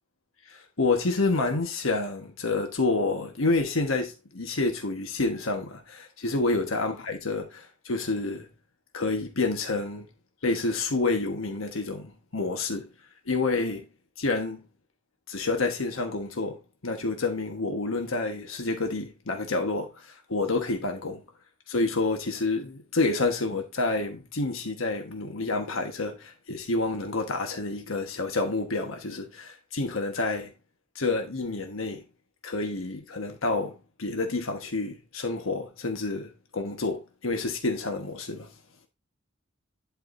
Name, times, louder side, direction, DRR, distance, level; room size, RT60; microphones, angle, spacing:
voice 1, 0.5-8.5 8.9-10.1 10.4-12.9 13.2-13.8 14.2-14.6 15.3-21.2 21.7-30.5 30.9-32.0 32.4-38.5, left 3 dB, 85° left, 1.3 m, -29 dB
11.0 x 4.8 x 2.6 m
head